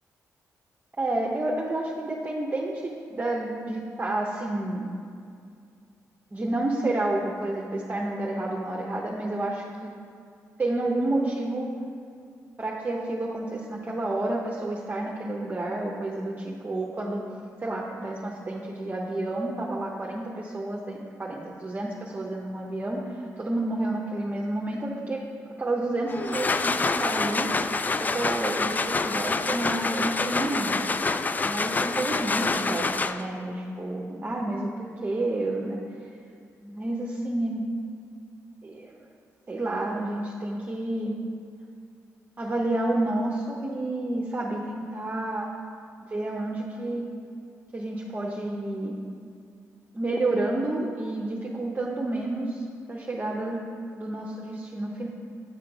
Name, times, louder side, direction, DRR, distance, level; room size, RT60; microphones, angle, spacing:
voice 1, 1.0-4.9 6.3-9.9 10.6-11.7 12.6-17.2 17.6-25.2 25.6-27.5 28.0-30.9 31.4-35.8 36.6-37.6 38.6-38.9 39.5-41.1 42.4-45.5 46.1-47.1 47.7-49.0 49.9-53.6 54.0-55.1, right 2 dB, 25° right, -2 dB, 0.8 m, -30 dB
sound 1, 26.1-33.4, left 3 dB, 30° left, 0.3 m, -27 dB
8.8 x 4.4 x 5.1 m, 2.3 s
cardioid pair, 65°, 6 cm